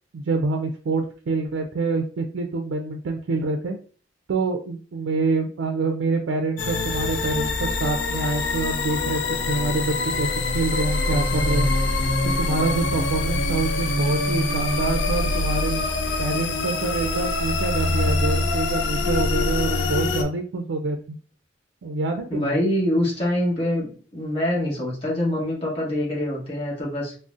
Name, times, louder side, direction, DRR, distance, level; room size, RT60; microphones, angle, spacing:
voice 1, 0.1-3.8 4.3-10.3 10.5-11.7 12.2-15.9 16.2-21.2 21.8-22.6, right 3 dB, 90° right, 4 dB, 0.4 m, -26 dB
sound 1, 6.6-20.2, left 2 dB, 85° left, 0.5 m, -24 dB
voice 2, 22.3-23.9 24.1-27.1, left 1 dB, 30° left, -5 dB, 1.1 m, -24 dB
3.7 x 2.1 x 2.4 m, 0.42 s
head